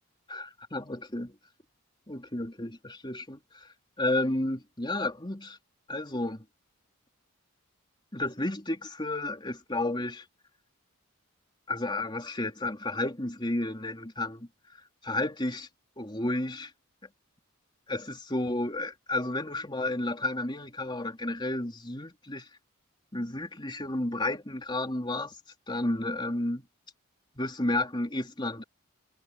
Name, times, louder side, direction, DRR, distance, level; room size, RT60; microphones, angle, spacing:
voice 1, 0.3-1.4 2.1-3.7 4.0-5.6 5.9-6.4 8.1-10.2 11.7-15.7 16.0-16.7 17.9-22.5 23.1-25.4 25.7-26.6 27.4-28.6, left 2 dB, 20° left, 3.5 m, -32 dB
head